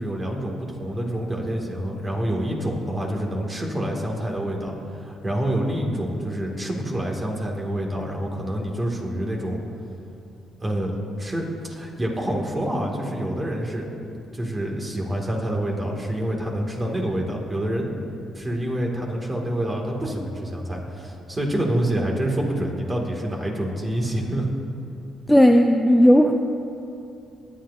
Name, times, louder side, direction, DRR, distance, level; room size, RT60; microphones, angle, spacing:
voice 1, 0.0-4.7 5.0-9.6 10.6-10.9 11.2-13.9 14.3-17.9 18.3-24.5, right 1 dB, 25° right, 0 dB, 2.3 m, -27 dB
voice 2, 25.3-26.3, equal, 5° left, 3 dB, 0.5 m, -14 dB
20.5 x 9.9 x 2.7 m, 2.6 s
cardioid pair, 90°, 0 cm